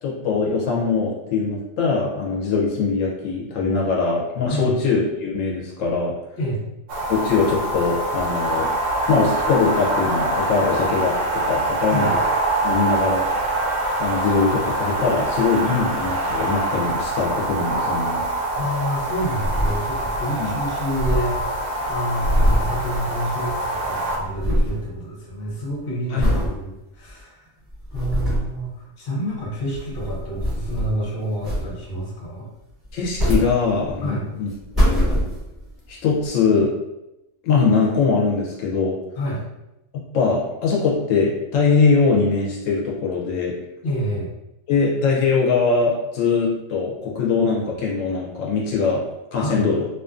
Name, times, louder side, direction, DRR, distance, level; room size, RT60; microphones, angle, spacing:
voice 1, 0.0-6.1 7.1-8.7 9.1-12.2 12.6-13.2 14.0-18.2 20.4-20.5 26.1-26.3 32.9-34.5 34.7-35.2 35.9-36.7 37.4-39.0 40.1-43.5 44.7-49.0 49.3-49.8, left 4 dB, 80° left, -3 dB, 1.0 m, -21 dB
sound 1, 6.9-24.2, right 2 dB, 80° right, 0.9 m, -24 dB
voice 2, 18.6-27.5 27.9-32.5 34.0-34.3 39.2-39.4 43.8-44.3 49.3-49.7, equal, 50° left, -4 dB, 0.9 m, -28 dB
sound 2, 19.3-20.3 20.5-20.6 20.8-23.6 23.8-24.9 25.3-25.6 26.2-26.6 27.1-27.2 27.7-28.6 29.6-31.0 31.4-32.0 32.8-34.1 34.5-35.7 36.3-36.4, equal, 15° right, 1.4 m, -23 dB
2.5 x 2.4 x 2.4 m, 0.91 s
omnidirectional pair, 1.3 m